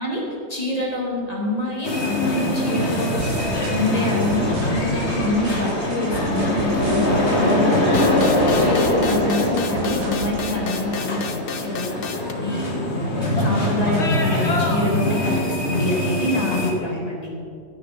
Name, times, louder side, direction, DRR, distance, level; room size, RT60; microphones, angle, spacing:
voice 1, 0.0-3.2 3.7-8.2 8.6-12.0 12.4-12.7 13.4-17.3, left 2 dB, 20° left, -3 dB, 2.7 m, -26 dB
sound 1, 1.8-16.7, left 1 dB, 35° left, 1.9 m, -22 dB
sound 2, 3.2-10.4, right 6 dB, 70° right, 1.4 m, -35 dB
sound 3, 7.9-12.3, left 6 dB, 70° left, 0.5 m, -32 dB
16.5 x 9.6 x 4.5 m, 2.5 s
omnidirectional pair, 2.0 m